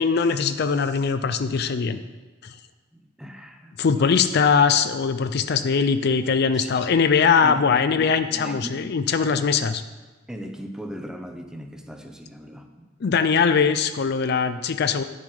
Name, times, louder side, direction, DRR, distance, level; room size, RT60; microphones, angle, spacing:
voice 1, 0.0-2.0 2.4-2.5 3.8-9.8 13.0-15.0, left 5 dB, 55° left, 10 dB, 0.4 m, -21 dB
voice 2, 2.9-4.1 6.5-6.9 7.4-8.8 10.3-12.9, equal, 5° right, 5 dB, 0.8 m, -38 dB
10.0 x 7.3 x 4.8 m, 1.3 s
head